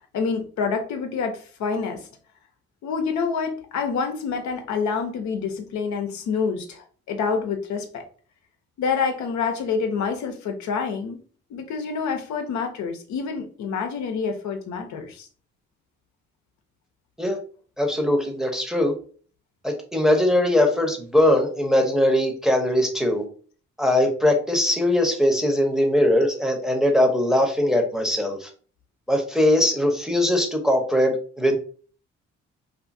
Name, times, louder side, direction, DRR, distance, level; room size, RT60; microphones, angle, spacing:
voice 1, 0.1-2.1 2.8-8.0 8.8-11.2 11.5-15.3, left 5 dB, 75° left, 5 dB, 0.7 m, -27 dB
voice 2, 17.8-18.9 19.6-23.2 23.8-28.5 29.1-31.6, left 1 dB, ahead, 2 dB, 0.8 m, -21 dB
2.6 x 2.5 x 2.6 m, 0.41 s
supercardioid pair, 55°, 29 cm